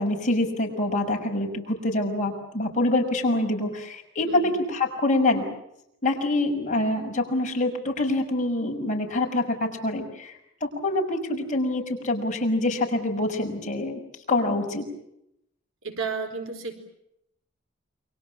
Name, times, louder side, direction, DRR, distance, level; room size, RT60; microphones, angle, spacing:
voice 1, 0.0-5.4 6.0-14.0 14.3-14.8, left 2 dB, 40° left, 2 dB, 6.3 m, -25 dB
voice 2, 15.8-16.7, right 5 dB, 70° right, 7 dB, 4.3 m, -32 dB
29.0 x 25.0 x 7.3 m, 0.81 s
head